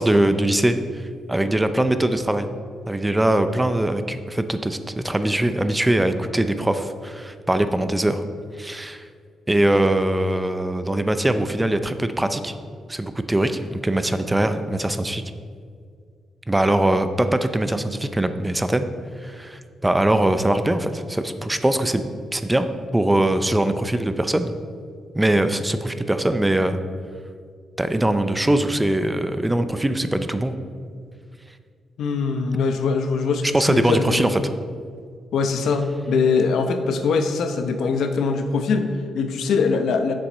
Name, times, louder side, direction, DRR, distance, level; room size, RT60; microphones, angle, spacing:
voice 1, 0.0-2.5 2.9-8.2 8.6-9.0 9.5-12.5 12.9-15.2 16.5-18.9 19.2-22.0 22.3-22.7 22.9-24.5 25.1-26.8 27.8-30.5 33.5-34.4, right 1 dB, 10° right, 10 dB, 0.4 m, -22 dB
voice 2, 32.0-34.5 35.3-40.1, left 4 dB, 80° left, 7 dB, 0.8 m, -22 dB
7.8 x 6.9 x 5.4 m, 2.1 s
cardioid pair, 125°, 0 cm